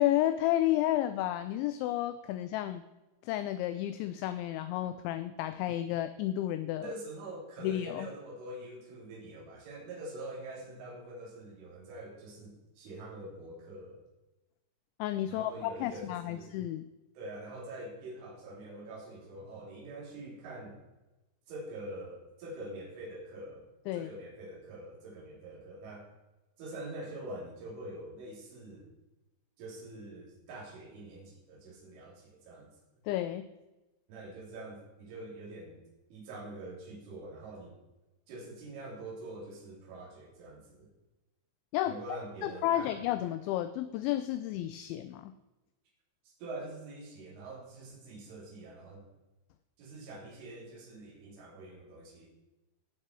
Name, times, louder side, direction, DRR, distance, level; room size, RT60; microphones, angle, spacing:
voice 1, 0.0-2.8 3.2-6.9 7.6-8.1 15.0-16.9 23.9-24.1 33.1-33.5 41.7-42.0 42.4-45.3, left 13 dB, 85° left, 11 dB, 2.7 m, -31 dB
voice 2, 6.8-14.0 15.3-16.5 17.2-20.8 21.5-23.6 23.9-26.1 26.6-28.9 29.6-32.7 34.1-35.8 36.1-37.8 38.3-40.9 41.9-43.0 46.4-49.1 49.8-52.3, right 1 dB, 75° right, -4 dB, 5.7 m, -45 dB
17.5 x 6.0 x 4.5 m, 1.1 s
omnidirectional pair, 5.6 m